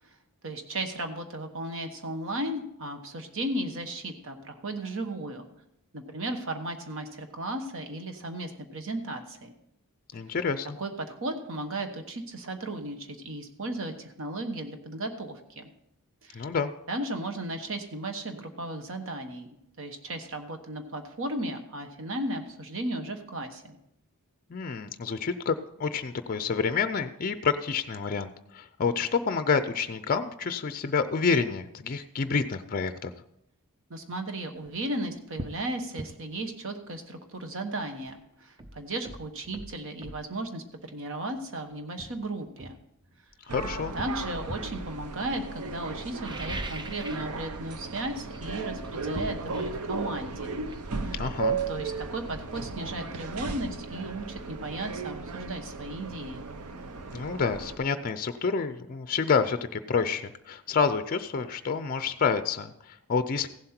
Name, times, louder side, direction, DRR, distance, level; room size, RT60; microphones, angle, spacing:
voice 1, 0.4-5.5 5.9-9.5 10.8-15.7 16.2-16.5 16.9-19.5 19.8-23.8 33.9-42.8 43.9-50.5 51.0-51.2 51.7-56.5, right 1 dB, 60° right, 6 dB, 1.2 m, -35 dB
voice 2, 10.1-10.8 16.3-16.7 24.5-25.5 25.8-33.1 43.5-43.9 51.1-51.6 57.1-63.5, left 5 dB, 40° left, 10 dB, 0.5 m, -28 dB
sound 1, 34.6-34.8 35.4-35.6 36.0-36.2 38.1-38.2 38.6-40.3 41.3-41.5 42.0-43.4 44.0-44.8 46.1-47.4 47.6-48.0 48.3-51.9 52.2-52.3, right 1 dB, 20° right, 0.6 m, -41 dB
sound 2, 43.5-57.8, right 3 dB, 85° right, 0.8 m, -36 dB
15.5 x 7.7 x 4.4 m, 0.80 s
head